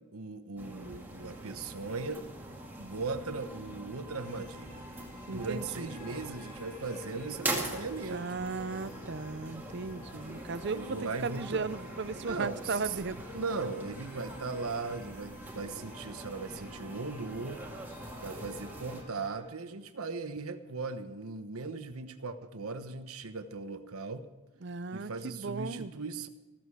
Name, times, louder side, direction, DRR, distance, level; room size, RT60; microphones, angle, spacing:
voice 1, 0.1-2.3 2.8-4.9 5.3-8.4 10.7-11.7 12.1-12.9 13.3-17.6 18.2-24.3 24.9-26.3, right 4 dB, 80° right, 9 dB, 1.1 m, -38 dB
sound 1, 0.6-19.0, right 1 dB, 10° right, 2.1 m, -43 dB
sound 2, 4.2-19.4, left 1 dB, 45° left, 5.3 m, -54 dB
voice 2, 5.3-5.9 8.1-13.2 24.6-25.9, right 4 dB, 50° right, 14 dB, 0.6 m, -36 dB
15.0 x 14.0 x 4.9 m, 1.2 s
head